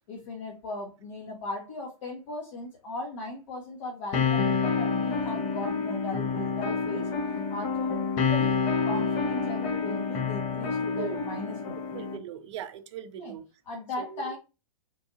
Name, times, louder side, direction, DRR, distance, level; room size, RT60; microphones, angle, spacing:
voice 1, 0.1-7.1 7.5-11.9 13.2-13.3 13.7-14.4, left 2 dB, 55° left, -1 dB, 0.9 m, -38 dB
sound 1, 4.1-12.2, left 5 dB, 30° left, 0.6 m, -28 dB
voice 2, 11.9-13.4 14.0-14.3, right 10 dB, 50° right, 9 dB, 0.5 m, -39 dB
3.1 x 2.6 x 2.6 m, 0.30 s
figure-of-eight pair, 115°, 19 cm